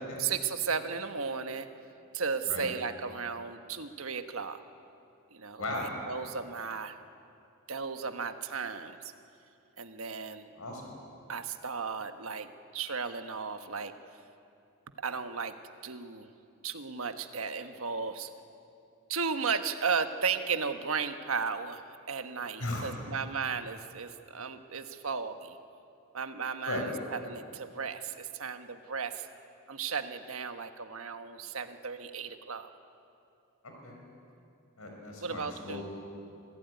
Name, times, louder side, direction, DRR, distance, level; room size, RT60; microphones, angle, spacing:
voice 1, 0.2-1.7 2.1-4.6 5.3-7.0 7.7-9.1 9.8-10.5 11.3-13.9 15.0-15.5 15.8-16.3 16.6-18.3 19.1-25.6 26.1-29.3 29.7-32.7 35.2-35.8, right 5 dB, 75° right, 8 dB, 1.3 m, -35 dB
voice 2, 5.6-5.9 10.6-11.0 22.6-23.1 26.6-26.9 33.8-34.0 34.8-35.8, left 1 dB, 85° left, 1 dB, 5.3 m, -37 dB
25.5 x 16.5 x 9.5 m, 2.6 s
head